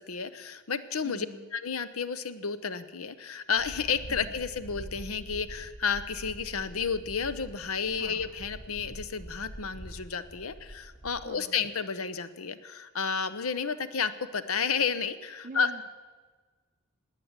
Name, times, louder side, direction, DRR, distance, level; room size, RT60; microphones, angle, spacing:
voice 1, 0.0-1.3 1.5-15.7, left 6 dB, 70° left, 13 dB, 0.8 m, -31 dB
voice 2, 1.0-1.4 4.1-4.3 8.0-8.2 11.2-11.5 15.4-15.9, right 2 dB, 35° right, 2 dB, 1.0 m, -44 dB
sound 1, 3.6-11.3, right 1 dB, 5° left, 3.2 m, -45 dB
18.0 x 9.6 x 8.1 m, 1.4 s
head